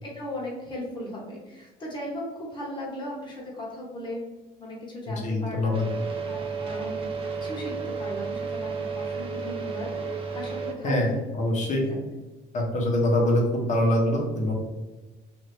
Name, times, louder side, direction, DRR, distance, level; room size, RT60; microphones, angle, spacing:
voice 1, 0.0-4.2 4.6-5.8 6.2-7.0 7.4-11.5, left 1 dB, 30° left, -3 dB, 1.2 m, -37 dB
voice 2, 5.1-5.8 10.8-11.8 12.5-14.5, left 1 dB, 45° left, 0 dB, 0.8 m, -24 dB
sound 1, 5.7-10.7, right 5 dB, 35° right, 0.6 m, -32 dB
2.7 x 2.5 x 3.2 m, 1.1 s
cardioid pair, 110°, 17 cm